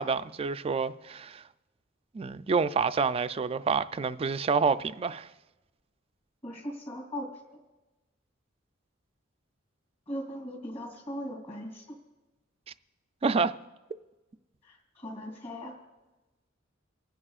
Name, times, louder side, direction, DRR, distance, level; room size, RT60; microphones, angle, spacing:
voice 1, 0.0-1.4 2.1-5.3 13.2-13.6, right 5 dB, 30° right, 0.3 m, -28 dB
voice 2, 6.4-7.3 10.1-12.0 14.6-15.7, equal, 35° left, 2.9 m, -39 dB
29.5 x 9.9 x 2.4 m
head